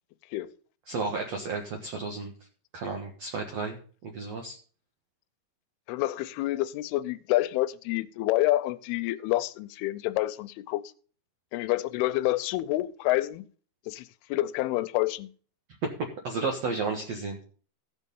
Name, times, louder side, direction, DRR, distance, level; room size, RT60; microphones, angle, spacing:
voice 1, 0.9-2.3 2.7-4.6 15.8-17.4, right 4 dB, 55° right, 2.0 m, -32 dB
voice 2, 5.9-10.8 11.5-13.4 13.9-15.3, left 17 dB, 85° left, 2.6 m, -28 dB
15.5 x 5.5 x 5.3 m
omnidirectional pair, 4.5 m